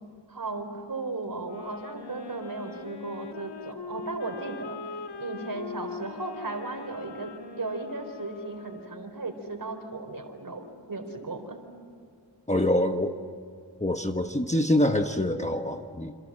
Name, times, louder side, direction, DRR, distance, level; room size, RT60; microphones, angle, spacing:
voice 1, 0.3-11.6, right 3 dB, 50° right, 6 dB, 4.2 m, -36 dB
sound 1, 1.4-9.2, left 5 dB, 60° left, 1.8 m, -42 dB
voice 2, 12.5-13.2 13.8-16.1, left 1 dB, 15° left, 5 dB, 1.2 m, -25 dB
28.0 x 27.0 x 7.6 m, 2.1 s
wide cardioid pair, 80°, 45 cm